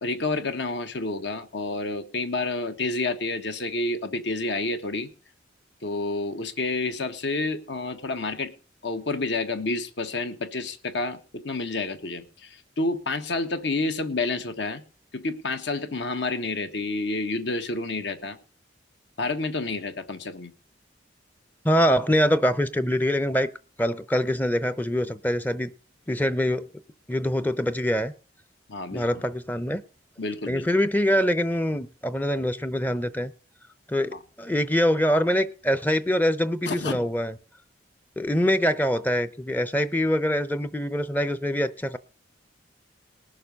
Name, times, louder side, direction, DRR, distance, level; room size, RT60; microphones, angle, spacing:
voice 1, 0.0-5.1 5.8-8.5 8.8-14.8 15.1-18.4 19.2-20.5 28.7-29.0 30.2-30.6 34.1-34.2 36.6-37.0, left 3 dB, 65° left, 1.4 m, -29 dB
voice 2, 21.6-23.5 23.8-25.7 26.1-26.7 27.1-28.1 28.9-29.8 30.5-33.3 33.9-37.3 38.2-42.0, equal, 10° left, 0.6 m, -24 dB
19.5 x 6.7 x 5.3 m
head